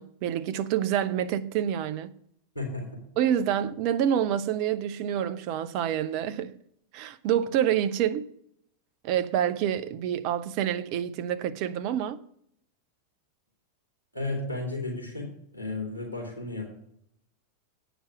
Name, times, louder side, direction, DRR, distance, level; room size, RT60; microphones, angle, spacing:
voice 1, 0.0-2.1 3.2-6.6 6.9-8.3 9.0-12.2, right 10 dB, 45° right, 0.6 m, -27 dB
voice 2, 2.5-2.9 14.1-16.6, left 2 dB, 90° right, 2.8 m, -33 dB
8.7 x 5.1 x 7.4 m
figure-of-eight pair, 90°, 0 cm